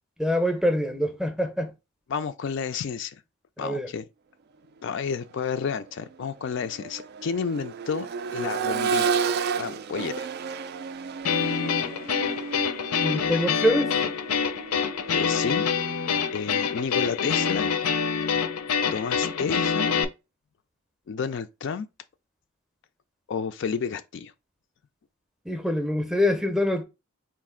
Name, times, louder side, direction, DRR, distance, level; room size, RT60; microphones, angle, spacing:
voice 1, 0.2-1.7 3.6-3.9 13.0-14.0 25.5-26.8, left 1 dB, ahead, 0.6 m, -25 dB
voice 2, 2.1-3.2 3.6-4.0 4.8-9.3 9.6-10.3 15.1-15.6 15.9-16.0 16.3-17.7 18.9-19.9 21.1-21.9 23.3-24.3, left 6 dB, 55° left, 0.3 m, -31 dB
Accelerating revving vroom, 5.2-5.4 5.8-15.7 17.4-17.5, right 6 dB, 45° right, 0.3 m, -32 dB
sound 1, 11.2-20.0, left 6 dB, 90° left, 0.6 m, -26 dB
4.1 x 2.5 x 3.6 m
head